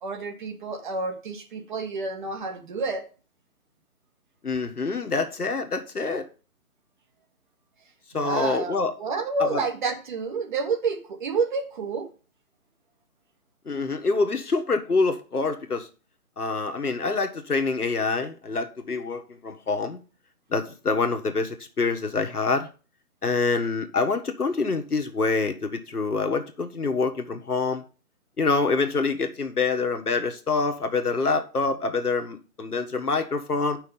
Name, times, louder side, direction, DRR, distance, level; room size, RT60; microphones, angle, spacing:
voice 1, 0.0-3.0 8.1-12.1, right 4 dB, 30° right, 4 dB, 1.6 m, -29 dB
voice 2, 4.4-6.2 8.1-8.9 9.5-9.6 13.6-15.9 16.4-20.0 20.5-22.7 23.2-27.8 28.4-33.8, left 4 dB, 85° left, 5 dB, 1.6 m, -26 dB
8.5 x 5.6 x 5.4 m, 0.35 s
figure-of-eight pair, 150°, 44 cm